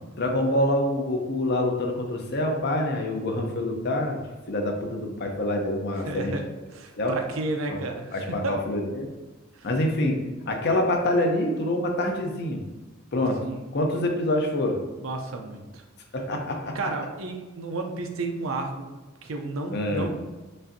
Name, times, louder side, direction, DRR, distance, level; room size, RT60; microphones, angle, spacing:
voice 1, 0.2-4.2 4.5-6.3 7.0-7.1 7.7-7.8 8.1-9.1 9.6-10.2 10.5-12.6 13.1-13.4 13.7-14.8 16.1-16.8 19.7-20.1, left 1 dB, 55° left, 2 dB, 0.6 m, -26 dB
voice 2, 6.0-6.4 6.7-8.6 9.5-9.7 13.4-13.7 15.0-15.8 16.7-18.9 19.2-20.1, right 2 dB, 85° right, 3 dB, 0.6 m, -32 dB
5.2 x 2.6 x 2.7 m, 1.2 s
head